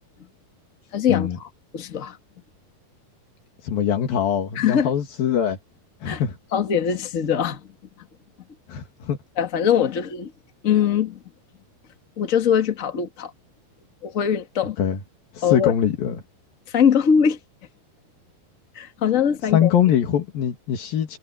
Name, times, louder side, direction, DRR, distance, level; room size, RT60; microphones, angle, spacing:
voice 1, 0.9-2.2 4.5-4.9 6.0-6.2 6.5-7.6 9.4-10.3 10.6-11.2 12.2-13.3 14.0-14.8 15.4-15.7 16.7-17.4 18.7-19.7, left 8 dB, 35° left, 1.3 m, -22 dB
voice 2, 3.6-5.6 6.0-6.4 8.7-9.2 14.8-15.0 15.3-16.2 19.5-21.2, left 9 dB, 80° left, 3.9 m, -22 dB
omnidirectional pair, 4.1 m